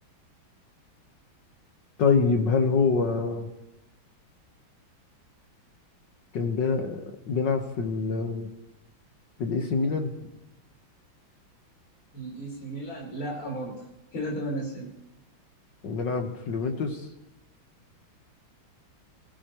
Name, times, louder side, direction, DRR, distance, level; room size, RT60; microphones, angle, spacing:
voice 1, 2.0-3.5 6.3-8.5 9.4-10.1 15.8-17.0, left 4 dB, 60° left, 4 dB, 1.9 m, -25 dB
voice 2, 12.1-13.8 14.1-14.9, right 1 dB, 90° left, -3 dB, 5.5 m, -34 dB
26.0 x 16.5 x 3.1 m, 0.94 s
omnidirectional pair, 2.2 m